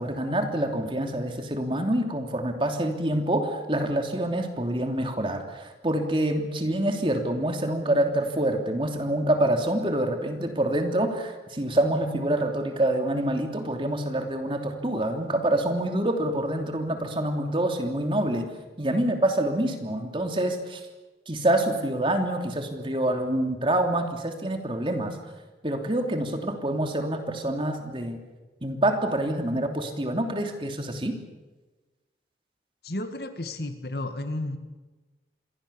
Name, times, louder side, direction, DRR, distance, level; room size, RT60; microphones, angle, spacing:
voice 1, 0.0-18.5 18.8-20.8 21.3-25.2 25.6-28.2 28.6-31.2, right 1 dB, 30° right, 4 dB, 3.0 m, -26 dB
voice 2, 32.8-34.6, left 1 dB, 65° left, 8 dB, 2.1 m, -32 dB
28.0 x 21.5 x 7.1 m, 1.2 s
head